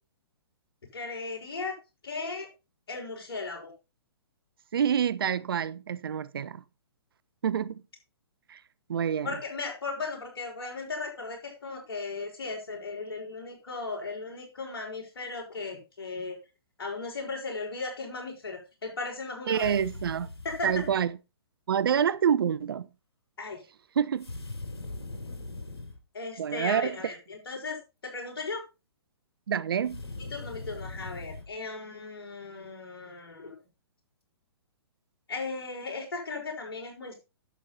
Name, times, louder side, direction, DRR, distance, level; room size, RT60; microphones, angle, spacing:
voice 1, 0.9-1.8 2.0-2.5 2.9-3.7 9.2-16.4 16.8-19.8 20.4-20.8 23.4-23.6 26.1-28.6 30.2-33.6 35.3-37.1, left 3 dB, 65° left, 6.0 m, -36 dB
voice 2, 4.7-6.6 7.4-7.8 8.5-8.6 8.9-9.3 19.5-20.3 20.6-21.1 21.7-22.9 24.0-24.3 26.4-27.1 29.5-30.0, right 8 dB, 65° right, 0.7 m, -27 dB
sound 1, 19.5-21.0 24.2-26.0 29.8-31.5, left 2 dB, 80° left, 3.3 m, -40 dB
11.0 x 7.7 x 4.0 m
figure-of-eight pair, 125°, 13 cm